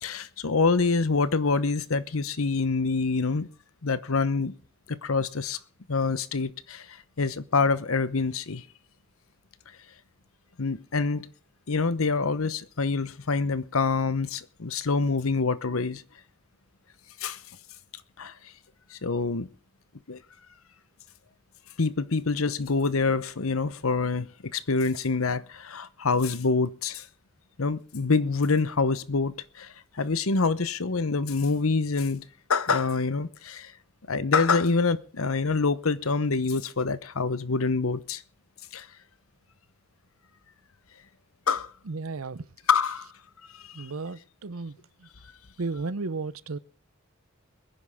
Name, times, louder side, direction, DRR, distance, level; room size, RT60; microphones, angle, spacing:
voice 1, 0.0-3.5 3.8-4.6 4.9-5.6 5.9-8.6 10.6-11.3 11.7-16.0 17.2-17.4 18.2-18.3 18.9-19.5 20.1-20.2 21.8-27.1 27.6-32.2 32.5-33.7 34.1-38.2 38.7-38.9 41.5-41.7 42.7-43.1 43.5-43.9, left 4 dB, 85° left, 1.0 m, -26 dB
voice 2, 41.8-42.5 43.7-45.1 45.6-46.6, right 3 dB, 85° right, 0.8 m, -34 dB
22.0 x 10.0 x 3.6 m
head